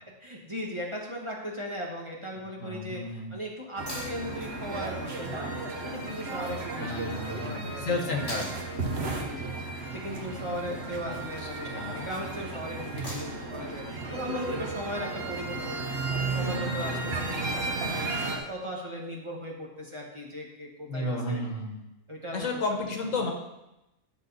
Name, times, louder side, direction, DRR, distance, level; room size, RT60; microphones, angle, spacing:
voice 1, 0.2-5.5 5.8-8.5 9.1-9.5 9.8-15.8 16.1-21.4 22.1-22.5, equal, 25° right, -2 dB, 1.3 m, -38 dB
voice 2, 2.6-3.3 6.8-8.5 11.0-12.1 20.9-21.7 22.3-23.3, left 2 dB, 75° left, 2 dB, 1.6 m, -32 dB
sound 1, 3.8-18.4, right 3 dB, 50° right, 1.4 m, -34 dB
sound 2, 3.9-4.2 6.4-6.5 8.3-8.6 10.6-11.0 13.0-13.5 15.6-15.7, equal, 15° left, 3.9 m, -39 dB
10.5 x 6.4 x 4.1 m, 0.93 s
omnidirectional pair, 1.4 m